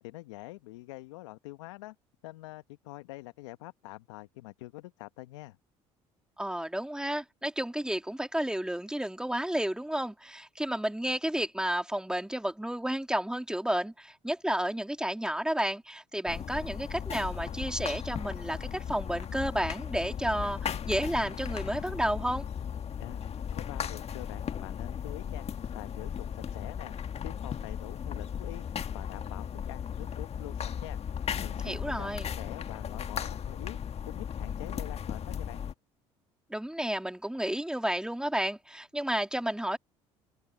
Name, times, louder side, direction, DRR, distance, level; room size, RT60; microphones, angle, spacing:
voice 1, 0.0-1.9 2.2-5.6 23.0-23.2 23.5-25.5 25.7-26.9 27.2-28.6 28.9-31.0 31.4-33.8 34.0-35.6, left 19 dB, 80° left, 1.2 m, -45 dB
voice 2, 6.4-22.5 31.6-32.3 36.5-39.8, right 1 dB, 5° right, 2.7 m, -31 dB
sound 1, 16.3-35.7, left 8 dB, 45° left, 1.6 m, -36 dB
open air
hypercardioid pair, 65°, 15 cm